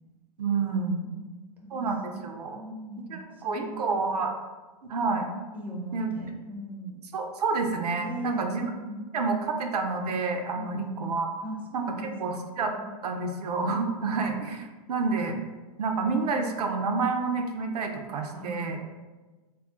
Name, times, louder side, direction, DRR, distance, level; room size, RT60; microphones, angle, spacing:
voice 1, 0.4-1.0 1.7-2.6 3.1-4.3 4.8-5.3 5.9-6.1 7.1-8.7 9.1-11.3 11.7-12.7 13.0-15.4 15.8-18.8, right 4 dB, 85° right, 4 dB, 0.4 m, -29 dB
voice 2, 1.0-2.2 2.5-3.9 5.5-7.0 8.0-8.4 8.7-9.1 10.5-10.8 11.4-12.4 12.7-12.9 18.3-18.8, right 1 dB, 10° right, -2 dB, 0.5 m, -39 dB
2.3 x 2.0 x 3.7 m, 1.2 s
hypercardioid pair, 130°, 20 cm